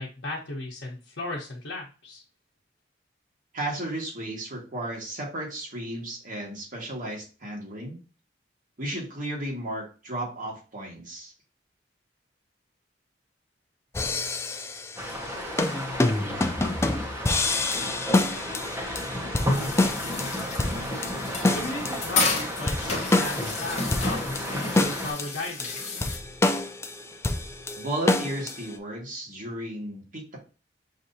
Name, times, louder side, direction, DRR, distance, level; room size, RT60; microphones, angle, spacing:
voice 1, 0.0-2.2 21.5-26.0, left 2 dB, 75° left, -4 dB, 0.9 m, -36 dB
voice 2, 3.5-8.0 8.8-11.3 27.7-30.4, right 1 dB, 50° right, -2 dB, 1.6 m, -34 dB
sound 1, 13.9-15.2 15.6-28.7, left 2 dB, 15° left, 0.3 m, -28 dB
sound 2, 15.0-25.1, equal, 15° right, 0.9 m, -33 dB
sound 3, 19.5-26.2, left 3 dB, 40° left, 1.0 m, -32 dB
5.9 x 2.6 x 2.6 m, 0.34 s
head